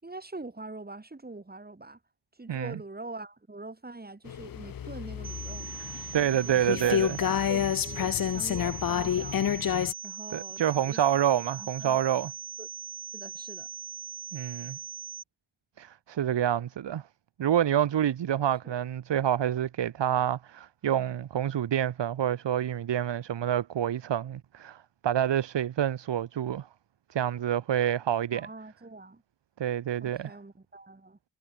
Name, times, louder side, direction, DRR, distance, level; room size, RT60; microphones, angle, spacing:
voice 1, 0.0-2.0 2.3-5.8 6.5-9.5 10.0-12.0 12.6-12.7 13.1-13.7 18.6-18.8 28.3-29.2 30.0-31.2, right 2 dB, 20° right, 5.7 m, -44 dB
sound 1, 4.2-9.9, left 9 dB, 50° left, 0.6 m, -29 dB
sound 2, 5.2-15.2, right 7 dB, 60° right, 2.0 m, -41 dB
voice 2, 6.1-7.2 10.3-12.3 14.3-14.8 15.8-17.0 17.4-26.7 27.1-28.5 29.6-30.3, right 10 dB, 75° right, 0.9 m, -27 dB
wide cardioid pair, 170°, 43 cm